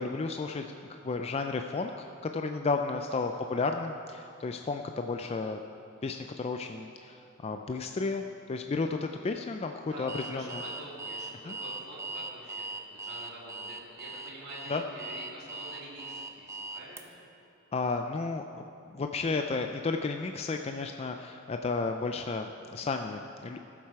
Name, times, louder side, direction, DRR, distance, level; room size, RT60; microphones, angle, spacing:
voice 1, 0.0-2.1 2.3-5.6 6.0-8.2 8.5-9.7 10.0-10.6 11.4-11.5 14.7-14.8 17.7-18.6 18.9-23.6, left 3 dB, 30° left, 5 dB, 0.3 m, -33 dB
voice 2, 3.0-3.5 9.8-17.1, right 1 dB, 55° right, -8 dB, 3.4 m, -46 dB
Alarm, 10.1-17.0, right 2 dB, 15° right, 0.6 m, -40 dB
17.5 x 7.4 x 4.7 m, 2.7 s
head